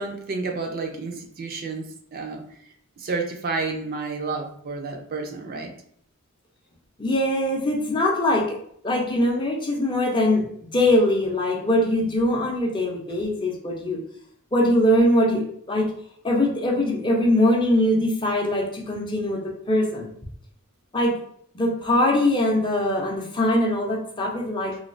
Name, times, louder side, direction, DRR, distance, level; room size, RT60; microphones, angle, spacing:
voice 1, 0.0-2.4 3.0-5.7, right 3 dB, 45° right, 3 dB, 0.4 m, -30 dB
voice 2, 7.0-8.6 8.8-10.5 10.7-14.0 14.5-15.9 16.2-20.1 20.9-21.2 21.5-24.8, left 1 dB, 20° left, -1 dB, 0.5 m, -22 dB
3.1 x 2.2 x 2.5 m, 0.66 s
head